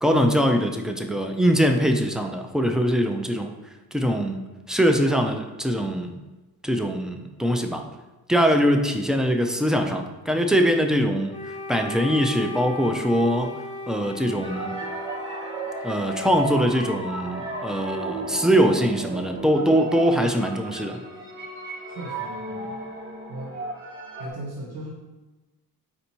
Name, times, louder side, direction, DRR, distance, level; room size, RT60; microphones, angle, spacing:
voice 1, 0.0-3.5 3.9-4.4 4.7-6.2 6.6-7.9 8.3-11.3 11.7-13.5 13.9-14.8 15.8-21.0, equal, ahead, 4 dB, 0.3 m, -22 dB
Wind instrument woodwind instrument, 11.3-19.4, left 2 dB, 20° left, 0.7 m, -38 dB
sound 1, 14.4-24.3, right 2 dB, 30° right, 0.9 m, -34 dB
voice 2, 21.9-22.7 23.3-23.5 24.1-24.9, right 1 dB, 85° right, -4 dB, 1.2 m, -37 dB
4.3 x 2.7 x 4.3 m, 1.1 s
cardioid pair, 85°, 37 cm